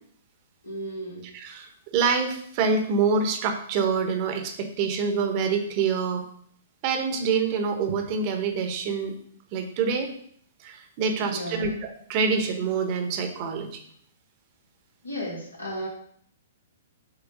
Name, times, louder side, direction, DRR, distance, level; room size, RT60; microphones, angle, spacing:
voice 1, 0.6-1.2 11.2-11.7 15.0-15.9, equal, 75° left, -4 dB, 2.8 m, -34 dB
voice 2, 1.3-6.2 6.8-9.1 9.5-10.1 10.6-13.8, right 5 dB, 40° right, 5 dB, 1.1 m, -26 dB
7.3 x 3.1 x 5.3 m, 0.63 s
figure-of-eight pair, 115°, 0 cm